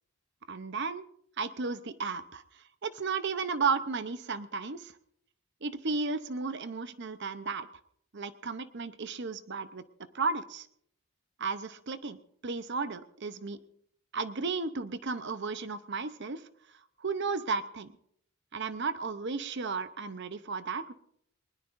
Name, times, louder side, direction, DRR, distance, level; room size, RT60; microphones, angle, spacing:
voice 1, 0.5-1.0 1.4-2.4 2.8-4.9 5.6-7.7 8.1-9.8 10.1-10.7 11.4-12.2 12.4-13.6 14.1-16.4 17.0-17.9 18.5-20.9, right 4 dB, 50° right, 12 dB, 0.7 m, -34 dB
20.5 x 20.0 x 2.6 m, 0.69 s
head